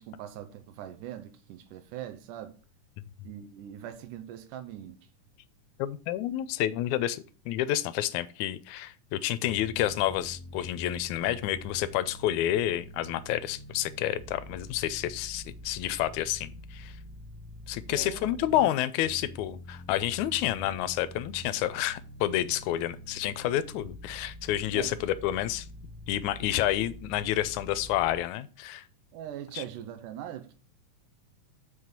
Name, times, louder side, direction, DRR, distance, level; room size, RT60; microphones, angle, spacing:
voice 1, 0.0-2.6 3.2-5.0 17.9-18.7 24.7-24.9 29.1-30.5, right 11 dB, 80° right, 2.3 m, -41 dB
voice 2, 5.8-17.0 17.7-25.7 26.1-28.8 29.6-29.7, left 13 dB, 80° left, 1.9 m, -29 dB
sound 1, 9.4-18.6 19.0-28.2, left 1 dB, 15° right, 0.3 m, -46 dB
6.5 x 5.5 x 5.9 m
omnidirectional pair, 3.7 m